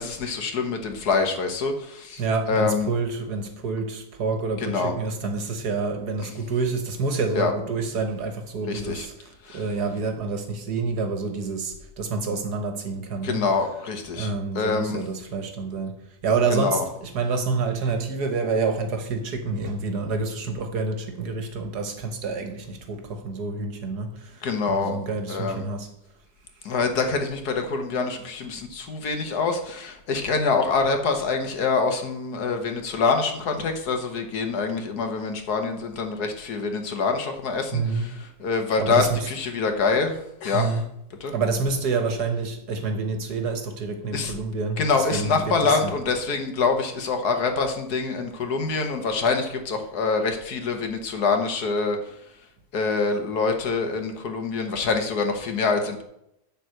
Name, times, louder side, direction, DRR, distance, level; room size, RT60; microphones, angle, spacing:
voice 1, 0.0-2.2 2.5-2.9 4.6-4.9 7.3-7.5 8.7-9.1 9.4-9.6 13.2-14.3 14.5-15.0 16.5-16.8 24.4-25.0 25.3-25.6 26.6-40.8 41.2-41.3 44.1-44.3 44.8-52.2 52.7-56.0, left 4 dB, 75° left, 1.7 m, -25 dB
voice 2, 2.2-13.4 14.2-25.9 37.7-38.1 38.8-39.3 40.5-40.8 41.3-45.9, right 4 dB, 75° right, 1.7 m, -28 dB
10.5 x 4.1 x 7.7 m
omnidirectional pair, 1.7 m